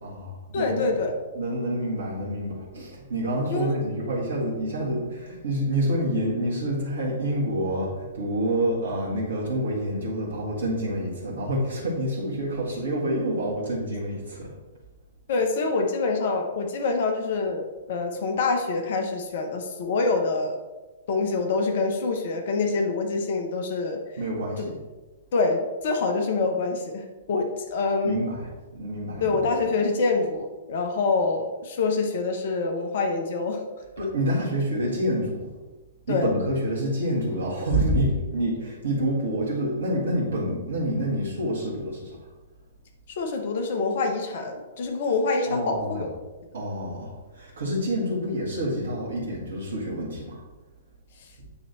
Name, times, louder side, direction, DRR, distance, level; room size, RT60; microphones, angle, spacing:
voice 1, 0.0-0.9 1.3-14.5 24.2-24.8 28.0-29.4 34.0-35.5 36.1-42.3 45.5-46.1 46.5-50.4, right 1 dB, 65° right, -5 dB, 1.7 m, -27 dB
voice 2, 0.5-1.1 3.5-3.7 15.3-20.6 21.1-24.0 24.6-24.7 25.3-28.2 29.2-33.6 36.1-36.3 43.1-46.1, left 3 dB, 55° left, 4 dB, 0.8 m, -26 dB
8.7 x 3.1 x 4.2 m, 1.2 s
figure-of-eight pair, 110°, 0 cm